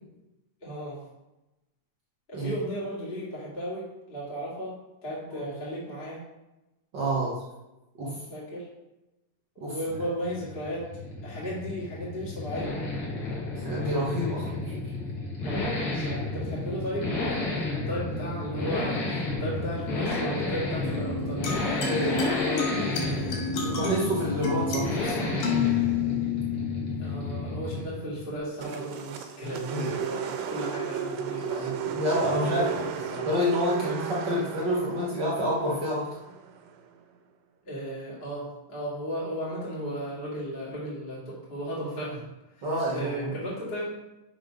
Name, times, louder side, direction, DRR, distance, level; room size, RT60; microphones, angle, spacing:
voice 1, 0.6-1.0 2.3-6.2 8.3-8.7 9.6-10.9 11.2-12.8 15.4-21.4 27.0-31.6 32.2-33.3 37.6-42.2 42.6-43.8, equal, 20° left, -7 dB, 1.9 m, -35 dB
voice 2, 6.9-7.4 8.0-8.2 9.6-9.7 13.6-14.8 21.9-23.2 23.6-25.4 29.7-29.9 31.4-32.8 33.2-36.1 42.6-43.3, equal, 65° right, -5 dB, 1.0 m, -29 dB
Accelerating revving vroom, 9.9-28.1 28.3-28.4, left 2 dB, 45° left, 1.3 m, -32 dB
sound 1, 20.8-27.8, left 6 dB, 85° left, 3.1 m, -31 dB
sound 2, 28.6-36.9, right 7 dB, 80° right, 2.3 m, -34 dB
6.3 x 5.9 x 5.1 m, 0.99 s
omnidirectional pair, 3.9 m